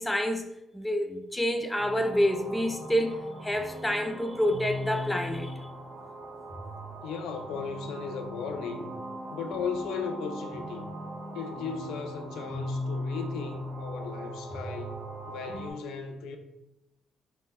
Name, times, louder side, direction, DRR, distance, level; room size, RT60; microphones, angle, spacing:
voice 1, 0.0-5.6, equal, 10° left, 6 dB, 0.3 m, -28 dB
sound 1, 1.7-15.7, equal, 60° right, 0.7 m, -39 dB
voice 2, 7.0-8.9 9.3-11.0 11.3-15.0 15.3-16.4, left 5 dB, 90° left, 6 dB, 0.3 m, -36 dB
2.5 x 2.0 x 3.5 m, 0.88 s
cardioid pair, 90°, 0 cm